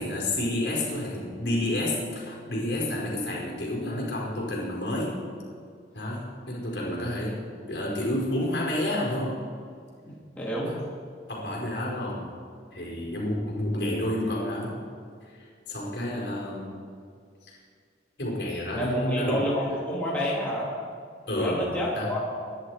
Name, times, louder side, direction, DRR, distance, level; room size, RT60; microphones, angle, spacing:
voice 1, 0.0-5.2 5.9-7.4 7.7-9.4 10.6-10.8 11.3-12.3 12.7-14.8 15.4-16.7 17.4-17.6 18.2-19.4 21.3-21.6 21.9-22.1, left 1 dB, 60° left, -3 dB, 5.1 m, -30 dB
voice 2, 10.0-10.7 18.7-20.7 21.4-22.2, equal, 10° left, -6 dB, 3.0 m, -29 dB
25.0 x 11.5 x 5.0 m, 2.2 s
head